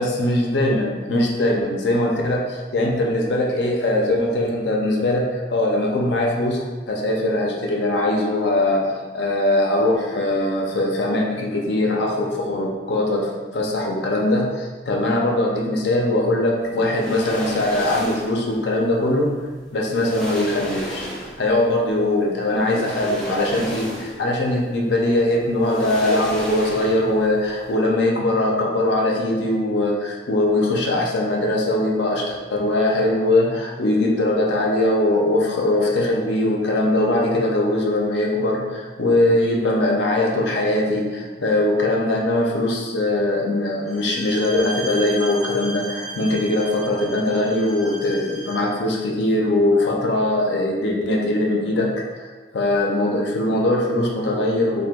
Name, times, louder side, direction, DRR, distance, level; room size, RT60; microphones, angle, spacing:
voice 1, 0.0-19.3 19.7-21.1 21.4-52.3 52.5-54.9, left 1 dB, 70° left, -1 dB, 0.5 m, -21 dB
sound 1, 16.9-18.4 19.5-19.6 19.9-21.5 22.6-24.3 24.7-24.8 25.6-27.2 27.5-27.6, equal, 5° left, 0.3 m, -33 dB
Bowed string instrument, 43.9-48.7, right 2 dB, 70° right, 0.8 m, -35 dB
2.8 x 2.2 x 3.5 m, 1.3 s
head